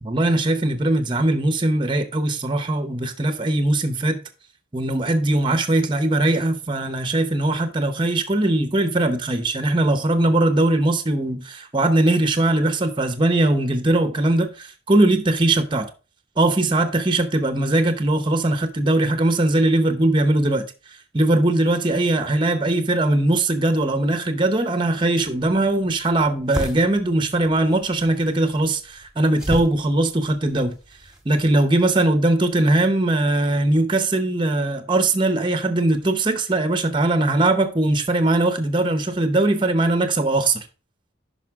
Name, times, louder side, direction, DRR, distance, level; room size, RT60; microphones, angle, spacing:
voice 1, 0.0-4.2 4.7-15.9 16.4-20.6 21.1-30.7 31.2-40.6, right 2 dB, 25° right, 0.8 m, -20 dB
sound 1, 25.2-31.5, equal, 5° right, 1.3 m, -35 dB
10.5 x 5.6 x 3.6 m
head